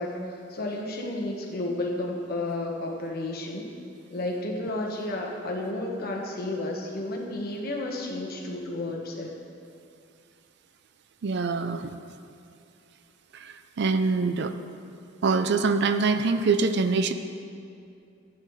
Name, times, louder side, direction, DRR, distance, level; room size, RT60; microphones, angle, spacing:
voice 1, 0.0-3.7 4.1-9.3, left 2 dB, 50° left, 0 dB, 1.3 m, -32 dB
voice 2, 11.2-11.9 13.4-14.5 15.2-17.1, right 4 dB, 60° right, 9 dB, 0.5 m, -24 dB
15.5 x 8.8 x 3.3 m, 2.5 s
head